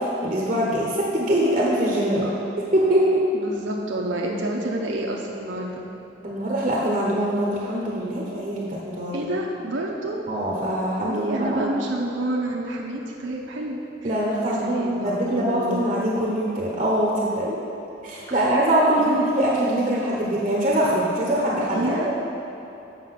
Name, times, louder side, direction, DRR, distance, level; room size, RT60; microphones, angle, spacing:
voice 1, 0.0-2.3 2.7-3.2 6.2-9.3 10.3-11.7 14.0-17.6 18.0-22.2, right 1 dB, 35° right, -4 dB, 0.9 m, -23 dB
voice 2, 2.2-2.5 3.3-5.9 9.1-10.2 11.0-14.1 14.4-15.8 18.3-18.4 19.0-19.3 21.7-22.2, right 1 dB, 85° right, -1 dB, 0.7 m, -29 dB
7.7 x 6.1 x 5.8 m, 3.0 s
head